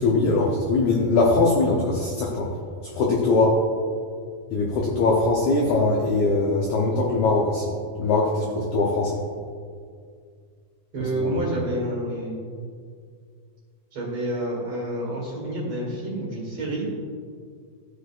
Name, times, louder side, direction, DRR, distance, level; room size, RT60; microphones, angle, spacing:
voice 1, 0.0-2.5 2.9-3.6 4.5-7.7 8.0-9.2 11.1-11.4, left 3 dB, 80° left, -2 dB, 1.7 m, -21 dB
voice 2, 10.9-12.4 13.9-16.9, right 1 dB, 45° right, -3 dB, 2.4 m, -28 dB
14.5 x 6.6 x 2.5 m, 2.1 s
omnidirectional pair, 4.5 m